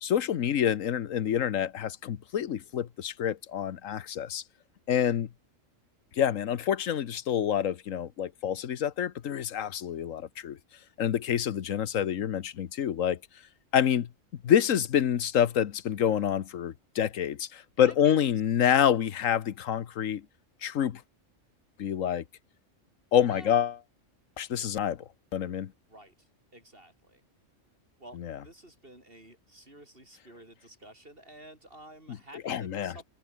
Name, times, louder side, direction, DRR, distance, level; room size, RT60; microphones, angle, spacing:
voice 1, 0.0-4.4 4.9-5.3 6.2-10.6 11.0-13.2 13.7-14.1 14.4-20.2 20.6-21.0 21.8-22.2 23.1-23.8 24.4-25.0 25.3-25.7 28.1-28.4 32.1-32.2 32.4-32.9, left 9 dB, 85° left, 1.3 m, -27 dB
voice 2, 17.8-18.2 23.3-23.6 25.9-26.1 26.5-27.2 28.0-33.0, right 1 dB, 45° right, 7.4 m, -50 dB
omnidirectional pair, 1.3 m